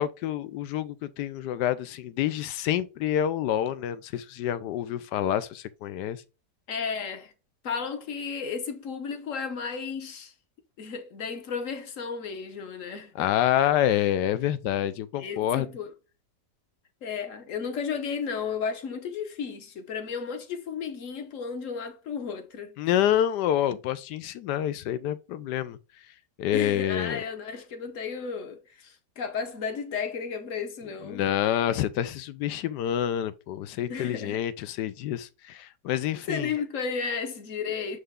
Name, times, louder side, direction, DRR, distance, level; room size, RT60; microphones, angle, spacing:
voice 1, 0.0-6.2 13.1-15.7 22.8-25.8 26.4-27.2 31.0-36.5, left 11 dB, 80° left, 1.2 m, -27 dB
voice 2, 6.7-7.3 7.6-10.3 10.8-13.3 15.2-15.9 17.0-22.8 26.5-31.2 33.9-34.4 36.3-38.0, left 6 dB, 55° left, 1.2 m, -33 dB
8.0 x 3.3 x 3.6 m
omnidirectional pair, 1.8 m